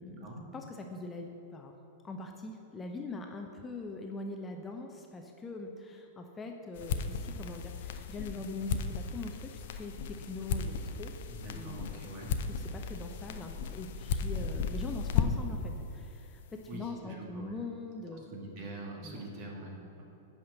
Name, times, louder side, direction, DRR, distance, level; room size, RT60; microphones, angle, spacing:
voice 1, 0.5-1.7 2.0-11.1 11.5-12.1 12.5-18.3 19.0-19.2, left 3 dB, 15° left, 3 dB, 0.7 m, -42 dB
sound 1, 6.7-15.6, left 6 dB, 55° left, 0.6 m, -35 dB
voice 2, 11.3-12.3 14.3-14.5 16.7-17.5 18.1-20.0, right 1 dB, 45° right, -2 dB, 2.4 m, -44 dB
8.5 x 5.9 x 6.8 m, 3.0 s
figure-of-eight pair, 95°, 0 cm